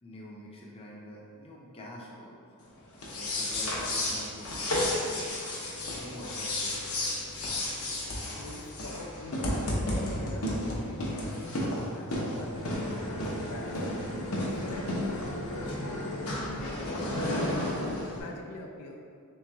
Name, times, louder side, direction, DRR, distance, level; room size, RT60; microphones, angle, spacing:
voice 1, 0.0-2.4 3.1-5.4 5.9-6.7 12.8-13.8, equal, 25° left, -3 dB, 0.6 m, -46 dB
sound 1, 2.9-18.2, left 1 dB, 70° left, 0.8 m, -32 dB
voice 2, 8.3-13.7 14.4-16.0 16.4-19.0, left 2 dB, 85° left, 2 dB, 0.4 m, -44 dB
3.6 x 3.1 x 3.4 m, 2.3 s
head